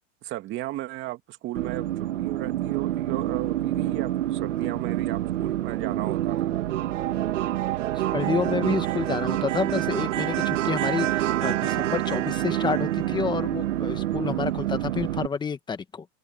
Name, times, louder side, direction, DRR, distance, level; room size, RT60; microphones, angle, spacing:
voice 1, 0.2-6.5, right 15 dB, 30° right, 2.1 m, -35 dB
sound 1, 1.6-15.3, right 13 dB, 75° right, 1.8 m, -27 dB
voice 2, 8.1-16.1, left 6 dB, 10° left, 1.3 m, -29 dB
open air
supercardioid pair, 145°, 38 cm